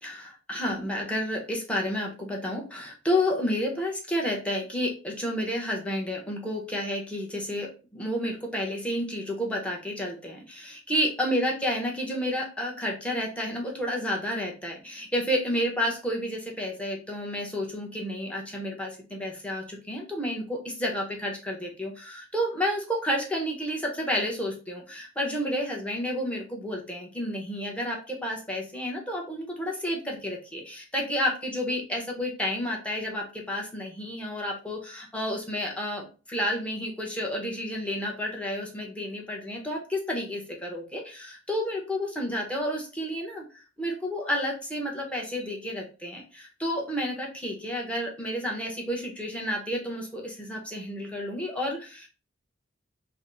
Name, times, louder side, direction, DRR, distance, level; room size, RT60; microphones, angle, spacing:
voice 1, 0.0-52.1, equal, 5° left, -1 dB, 0.8 m, -31 dB
3.4 x 2.1 x 3.8 m, 0.34 s
head